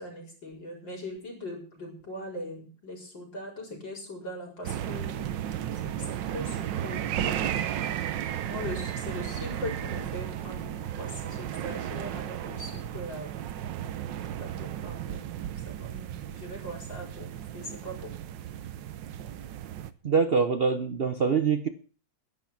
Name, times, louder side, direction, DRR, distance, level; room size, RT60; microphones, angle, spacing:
voice 1, 0.0-5.3 5.7-7.6 8.4-13.3 14.4-15.3 15.7-18.1, left 1 dB, 85° left, 0 dB, 5.5 m, -40 dB
sound 1, 4.6-19.9, right 10 dB, 80° right, 1.5 m, -34 dB
voice 2, 20.0-21.7, right 5 dB, 50° right, 9 dB, 0.7 m, -24 dB
11.0 x 11.0 x 5.9 m, 0.40 s
omnidirectional pair, 1.9 m